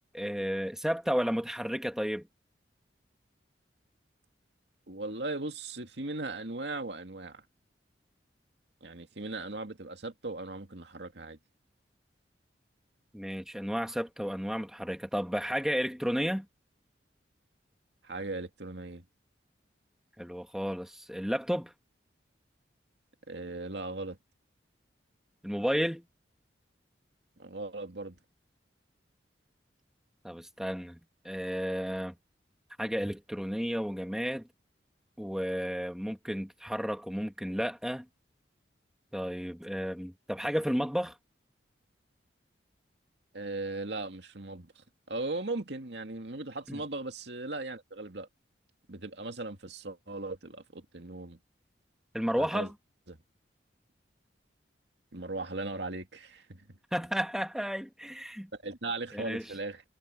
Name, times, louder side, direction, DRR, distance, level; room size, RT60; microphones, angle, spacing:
voice 1, 0.1-2.3 13.1-16.5 20.2-21.7 25.4-26.0 30.2-31.0 31.2-32.1 32.8-34.5 35.2-38.1 39.1-41.1 46.7-46.8 52.1-52.7 56.9-58.5 59.1-59.4, equal, 5° right, 1.7 m, -32 dB
voice 2, 4.9-7.4 8.8-11.4 18.0-19.1 23.3-24.2 27.4-28.2 43.3-48.3 48.9-51.4 52.4-52.7 53.1-53.2 55.1-56.8 58.5-59.8, right 2 dB, 70° right, 2.3 m, -38 dB
head